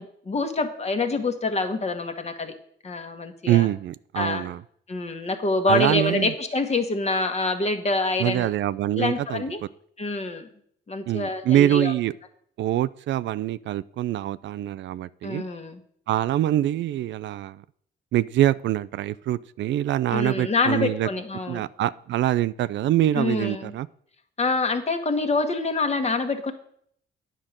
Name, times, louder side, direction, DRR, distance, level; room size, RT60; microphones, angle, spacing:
voice 1, 0.0-2.5 2.8-3.7 4.1-4.5 4.9-8.5 8.9-9.6 10.0-10.5 10.9-11.9 15.2-15.8 20.1-21.6 23.1-23.7 24.4-26.5, left 3 dB, 35° left, 6 dB, 1.4 m, -26 dB
voice 2, 3.5-4.6 5.7-6.3 8.2-9.4 11.1-12.1 12.6-15.4 16.1-17.6 18.1-21.1 21.5-23.9, right 13 dB, 65° right, 16 dB, 0.4 m, -24 dB
9.9 x 5.1 x 7.4 m, 0.65 s
cardioid pair, 90°, 20 cm